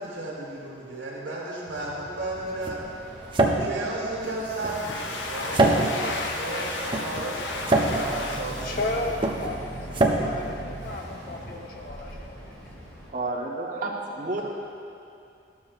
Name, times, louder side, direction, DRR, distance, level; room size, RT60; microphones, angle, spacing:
voice 1, 0.0-2.8 3.6-8.9 9.9-10.6 14.3-14.4, right 2 dB, 85° right, -5 dB, 1.6 m, -34 dB
sound 1, 1.7-11.5, right 2 dB, 25° right, 0.6 m, -27 dB
Boat Water vehicle, 2.3-13.1, right 1 dB, 15° left, 1.7 m, -42 dB
Domestic sounds home sounds, 4.2-9.9, left 2 dB, 90° left, 0.7 m, -34 dB
voice 2, 8.6-9.6 9.9-12.6, left 2 dB, 50° left, 0 dB, 0.8 m, -34 dB
voice 3, 13.1-14.4, right 2 dB, 45° right, -2 dB, 1.0 m, -30 dB
13.5 x 7.1 x 2.4 m, 2.5 s
head